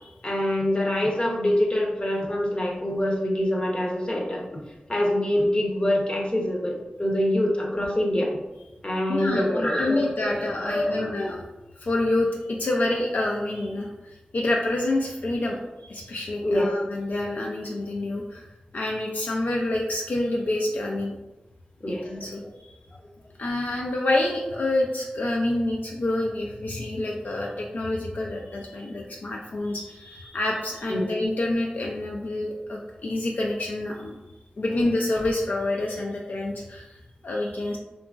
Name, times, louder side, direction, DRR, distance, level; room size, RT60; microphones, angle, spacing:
voice 1, 0.2-4.4 4.9-8.3 8.8-11.2 16.4-16.7 21.8-22.4 30.9-31.1, left 1 dB, 35° left, -1 dB, 0.6 m, -25 dB
voice 2, 9.1-11.4 11.8-18.4 18.7-21.1 21.9-22.7 23.4-34.1 34.6-37.8, left 2 dB, 70° left, -2 dB, 0.3 m, -27 dB
2.8 x 2.5 x 2.3 m, 1.0 s
cardioid pair, 45°, 3 cm